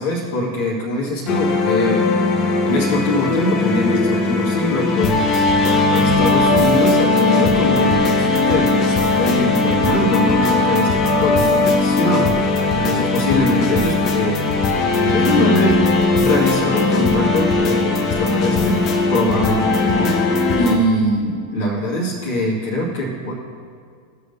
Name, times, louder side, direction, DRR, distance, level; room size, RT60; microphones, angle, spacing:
voice 1, 0.0-2.2 2.6-14.5 14.9-23.3, left 1 dB, 55° left, -4 dB, 2.2 m, -23 dB
sound 1, 1.3-20.8, left 3 dB, 35° left, 1.0 m, -18 dB
17.0 x 6.6 x 2.8 m, 2.1 s
figure-of-eight pair, 90°, 0 cm